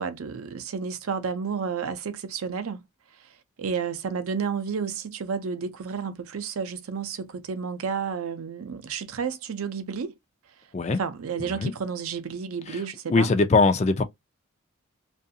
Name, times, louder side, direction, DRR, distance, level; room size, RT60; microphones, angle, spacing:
voice 1, 0.0-2.8 3.6-10.1 10.9-13.3, right 6 dB, 75° right, 0.5 m, -31 dB
voice 2, 13.1-14.0, left 3 dB, 30° left, 0.3 m, -21 dB
2.5 x 2.3 x 2.6 m
head